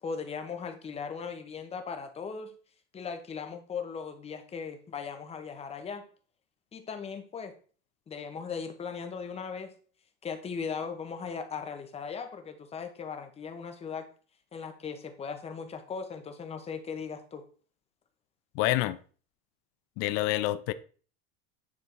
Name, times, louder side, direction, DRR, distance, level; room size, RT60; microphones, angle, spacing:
voice 1, 0.0-2.5 2.9-6.0 6.7-7.5 8.1-9.7 10.2-14.1 14.5-17.4, left 6 dB, 20° left, 1.0 m, -38 dB
voice 2, 18.5-19.0 20.0-20.7, left 15 dB, 45° left, 0.5 m, -27 dB
9.8 x 3.6 x 4.5 m
supercardioid pair, 150°, 33 cm